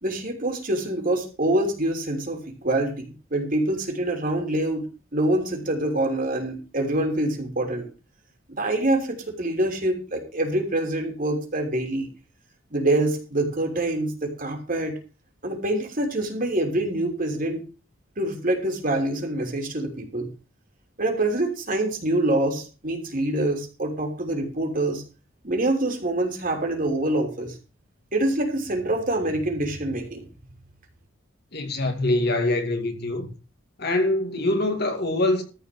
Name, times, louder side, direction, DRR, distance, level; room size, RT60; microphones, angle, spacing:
voice 1, 0.0-4.8 5.1-7.9 8.6-12.1 12.7-15.0 15.4-17.6 18.2-20.3 21.0-25.0 25.4-27.6 28.1-30.3, right 1 dB, 45° right, 3.3 m, -25 dB
voice 2, 31.5-33.3 33.8-35.4, left 2 dB, 55° left, 2.3 m, -24 dB
14.0 x 5.2 x 7.7 m
head